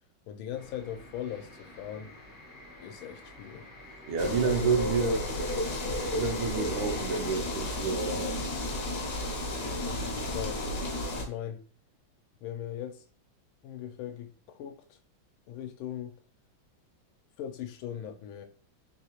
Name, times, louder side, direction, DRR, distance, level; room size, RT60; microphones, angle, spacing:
voice 1, 0.3-2.1 2.8-4.9 9.7-10.7 11.1-11.6 12.4-13.0 13.6-15.0 15.5-16.2 17.4-18.5, left 10 dB, 85° left, 1.4 m, -40 dB
sound 1, 0.5-7.3, left 2 dB, 40° left, 0.7 m, -48 dB
voice 2, 4.1-5.2 6.2-8.4, right 5 dB, 75° right, 1.3 m, -29 dB
sound 2, 4.2-11.2, left 1 dB, 60° left, 1.0 m, -32 dB
3.6 x 2.7 x 2.9 m
omnidirectional pair, 2.2 m